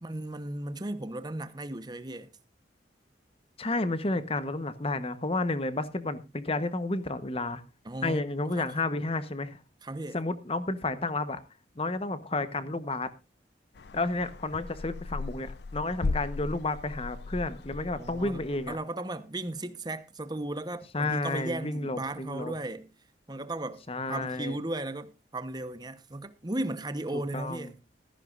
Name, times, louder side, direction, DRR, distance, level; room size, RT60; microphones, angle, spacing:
voice 1, 0.0-2.3 7.8-8.2 8.6-8.8 9.8-10.2 17.9-22.9 23.3-23.8 24.1-27.8, right 1 dB, 25° right, 1.0 m, -36 dB
voice 2, 3.6-7.6 8.0-9.6 10.1-11.4 11.8-13.1 13.9-18.8 20.9-22.5 23.9-24.6 27.1-27.7, left 2 dB, 30° left, 1.0 m, -31 dB
sound 1, 13.8-18.8, left 3 dB, 60° left, 0.6 m, -37 dB
15.5 x 14.0 x 2.5 m
head